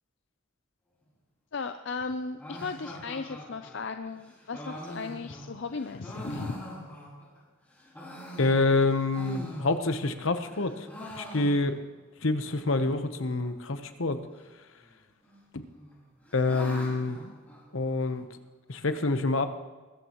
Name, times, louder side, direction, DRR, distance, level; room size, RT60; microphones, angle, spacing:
voice 1, 1.5-6.7, left 4 dB, 60° left, 8 dB, 0.6 m, -36 dB
sound 1, 2.4-7.4 7.8-10.1 10.4-12.0 12.2-12.3 12.6-12.7 13.3-13.7 14.8-15.4 15.7-18.2, equal, 10° left, 5.4 m, -43 dB
voice 2, 8.4-10.9 11.1-11.8 12.2-14.2 15.5-15.6 16.3-17.3 17.7-18.3 18.7-19.5, left 3 dB, 75° left, 8 dB, 1.1 m, -27 dB
22.0 x 13.5 x 3.1 m, 1.3 s
head